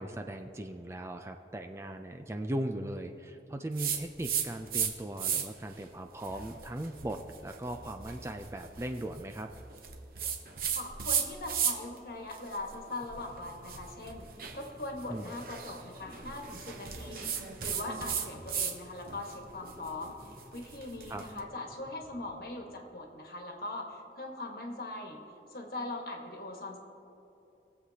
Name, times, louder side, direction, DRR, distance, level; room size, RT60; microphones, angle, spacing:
voice 1, 0.0-9.5 15.1-15.3 21.1-21.2, right 1 dB, 15° right, 6 dB, 0.3 m, -38 dB
sound 1, 3.8-4.9 5.2-5.7 6.2-12.0 12.3-18.8 19.1-21.3, right 7 dB, 55° right, 0.9 m, -35 dB
voice 2, 10.7-17.3 17.6-25.2 25.5-26.8, left 2 dB, 55° left, 2 dB, 1.4 m, -41 dB
sound 2, 12.7-23.2, equal, 10° left, 1.1 m, -55 dB
20.5 x 7.7 x 2.8 m, 3.0 s
head